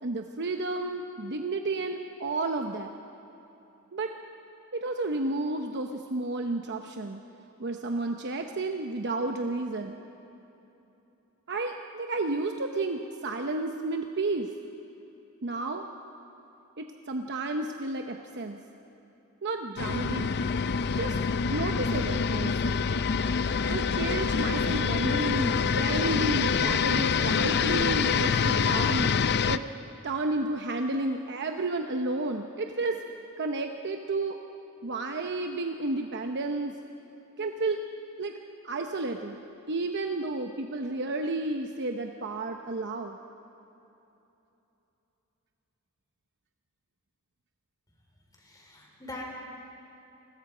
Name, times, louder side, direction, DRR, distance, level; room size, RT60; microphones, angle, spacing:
voice 1, 0.0-2.9 3.9-4.1 4.7-7.2 7.6-10.0 11.5-14.5 15.4-15.8 16.8-18.6 19.4-20.3 21.0-21.2 21.5-22.8 23.7-29.1 29.5-29.6 30.0-33.0 33.4-34.4 34.8-36.8 37.4-37.8 38.2-38.3 38.6-39.4 39.7-43.2, right 2 dB, 55° right, 4 dB, 0.9 m, -31 dB
sound 1, 19.8-29.6, left 6 dB, 50° left, 0.5 m, -26 dB
voice 2, 48.3-49.2, left 2 dB, 15° left, -1 dB, 4.7 m, -42 dB
29.0 x 21.0 x 5.0 m, 3.0 s
head